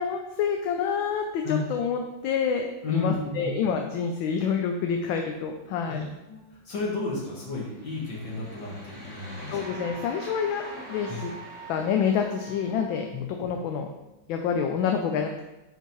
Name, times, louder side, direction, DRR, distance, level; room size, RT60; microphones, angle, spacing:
voice 1, 0.0-6.1 9.5-10.6 10.9-11.3 11.7-13.1 13.4-13.9 14.3-15.4, left 6 dB, 80° left, 4 dB, 1.3 m, -27 dB
voice 2, 2.8-3.5 5.8-6.0 6.3-9.6 11.1-11.2 13.1-13.3, left 3 dB, 60° left, -4 dB, 2.4 m, -32 dB
sound 1, 7.6-13.0, equal, 15° left, 0.9 m, -45 dB
Wind instrument woodwind instrument, 9.6-13.1, right 6 dB, 70° right, 1.0 m, -46 dB
9.1 x 4.5 x 3.0 m, 1.0 s
omnidirectional pair, 2.2 m